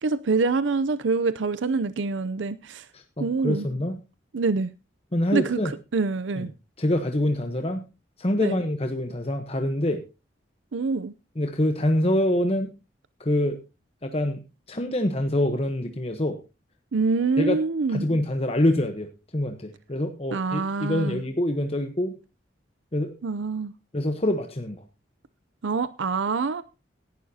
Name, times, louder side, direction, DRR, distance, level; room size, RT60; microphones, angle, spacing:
voice 1, 0.0-2.9 3.2-3.7 4.3-4.7 5.3-6.5 8.4-8.6 10.7-11.1 16.9-18.1 20.3-21.2 23.2-23.7 25.6-26.6, right 4 dB, 85° right, 0.6 m, -25 dB
voice 2, 2.9-4.0 5.1-5.7 6.4-6.5 6.8-7.9 8.2-10.0 11.4-12.7 13.2-13.6 14.0-14.4 14.7-16.4 17.4-17.6 17.9-22.2 22.9-23.1 23.9-24.8, left 1 dB, 30° left, 1.0 m, -25 dB
17.5 x 11.5 x 2.8 m
head